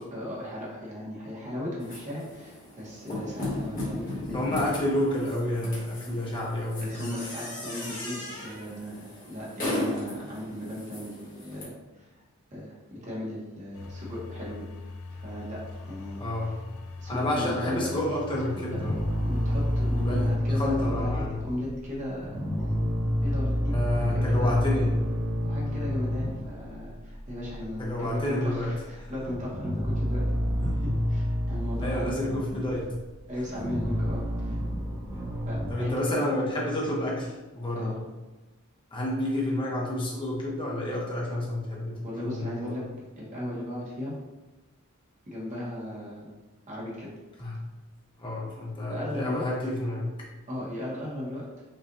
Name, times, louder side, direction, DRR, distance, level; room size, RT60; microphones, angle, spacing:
voice 1, 0.0-4.3 6.8-12.1 12.5-14.6 15.1-16.2 17.0-17.9 18.3-18.4 19.3-22.7 23.2-24.6 25.4-30.2 30.6-30.7 31.1-32.3 33.3-34.6 35.5-35.9 37.7-38.0 42.0-42.8 43.2-44.1 45.3-46.3 46.7-47.1 48.9-49.4 50.5-51.7, left 1 dB, 35° right, -6 dB, 1.0 m, -36 dB
sound 1, 1.8-11.6, left 1 dB, 40° left, 1.4 m, -36 dB
voice 2, 4.3-7.2 16.2-16.7 17.1-19.0 20.0-21.5 23.7-25.1 27.8-29.1 30.6-30.8 31.8-33.0 35.7-38.0 38.9-42.9 47.4-47.6 48.2-50.3, left 1 dB, 25° left, -4 dB, 0.8 m, -30 dB
sound 2, 13.7-20.4, left 3 dB, 75° left, 0.4 m, -41 dB
sound 3, 18.7-21.9 22.2-26.8 27.1-28.2 28.4-28.6 29.0-33.0 33.4-35.7, equal, 10° right, 0.6 m, -29 dB
5.4 x 2.4 x 2.6 m, 1.1 s
head